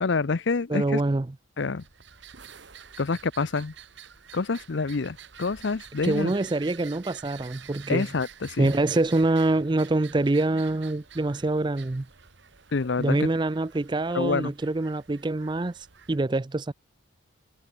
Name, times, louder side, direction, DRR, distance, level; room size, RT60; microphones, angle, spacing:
voice 1, 0.0-1.0 1.6-1.8 3.0-3.7 4.3-6.3 7.9-8.7 12.7-13.3 14.1-14.5, left 4 dB, 60° left, 0.6 m, -27 dB
voice 2, 0.7-1.3 6.0-8.0 8.6-12.1 13.0-15.7 16.1-16.7, right 2 dB, 20° right, 0.4 m, -25 dB
sound 1, 1.8-16.2, right 8 dB, 55° right, 1.2 m, -49 dB
head